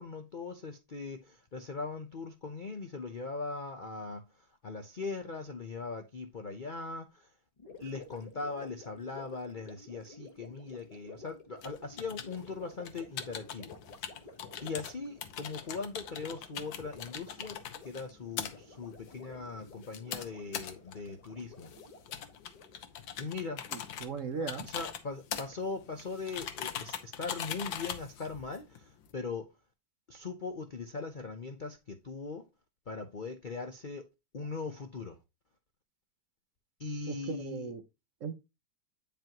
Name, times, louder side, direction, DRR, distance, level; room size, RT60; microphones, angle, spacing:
voice 1, 0.0-4.2 4.6-7.3 7.8-13.8 14.6-17.5 17.8-21.7 23.2-23.6 24.7-29.5 30.1-32.4 32.9-34.0 34.3-35.2 36.8-37.7, left 4 dB, 65° left, 0.4 m, -40 dB
Gurgling, 7.6-22.8, left 3 dB, 30° left, 0.8 m, -53 dB
sound 1, 11.6-29.1, left 9 dB, 85° left, 1.7 m, -42 dB
voice 2, 23.7-24.7 37.1-37.8 38.2-38.3, right 5 dB, 60° right, 0.9 m, -38 dB
9.1 x 5.3 x 2.9 m
omnidirectional pair, 2.0 m